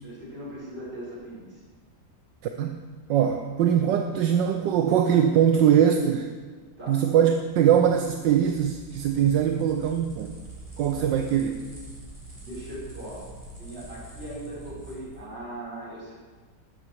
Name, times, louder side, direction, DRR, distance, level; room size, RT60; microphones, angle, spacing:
voice 1, 0.0-1.6 6.8-7.0 10.9-11.1 12.3-13.3 13.6-16.1, right 1 dB, 30° right, -7 dB, 5.8 m, -39 dB
voice 2, 3.1-6.3 6.9-10.4 10.8-11.6, right 9 dB, 75° right, 5 dB, 1.4 m, -22 dB
sound 1, 8.0-15.2, right 2 dB, 15° right, 5.0 m, -44 dB
14.0 x 12.5 x 4.7 m, 1.4 s
omnidirectional pair, 2.0 m